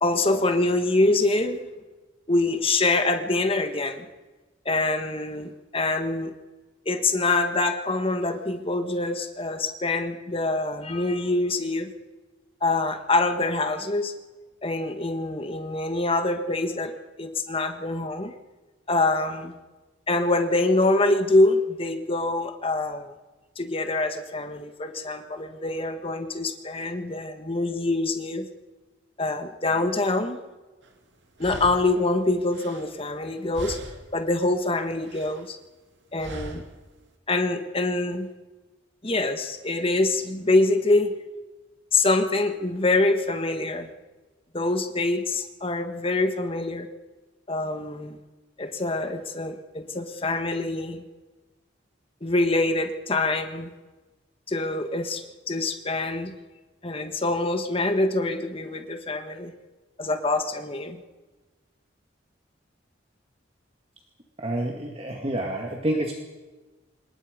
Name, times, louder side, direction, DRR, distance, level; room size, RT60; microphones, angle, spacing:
voice 1, 0.0-1.6 2.3-4.1 4.6-6.3 6.8-11.9 12.6-14.1 14.6-16.9 17.2-18.3 18.9-19.6 20.1-23.1 23.6-28.5 29.2-30.4 31.4-33.8 34.1-35.6 36.1-36.6 37.3-38.3 39.0-41.1 41.9-43.9 44.5-46.9 47.5-48.2 48.6-51.0 52.2-53.7 54.5-56.4 56.8-59.5 60.0-61.0, left 2 dB, 30° left, 7 dB, 1.6 m, -25 dB
sound 1, 30.8-30.9 31.4-33.3 33.5-34.2 34.6-35.5 36.2-36.8, right 1 dB, 65° right, 2.4 m, -40 dB
voice 2, 64.4-66.1, right 1 dB, 30° right, 1 dB, 2.2 m, -28 dB
26.0 x 21.0 x 5.3 m, 1.2 s
head